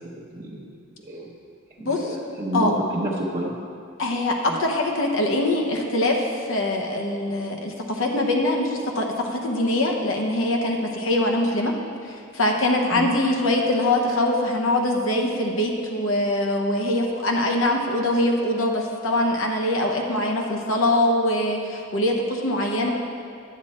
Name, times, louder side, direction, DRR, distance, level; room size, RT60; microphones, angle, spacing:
voice 1, 0.1-0.7 1.0-1.3 1.8-3.5 4.5-4.6 12.9-13.1, right 1 dB, 30° right, -5 dB, 0.9 m, -29 dB
voice 2, 1.8-2.2 2.5-2.7 4.0-11.7 12.1-22.9, left 1 dB, 70° left, 1 dB, 1.0 m, -23 dB
10.5 x 7.8 x 4.3 m, 2.4 s
head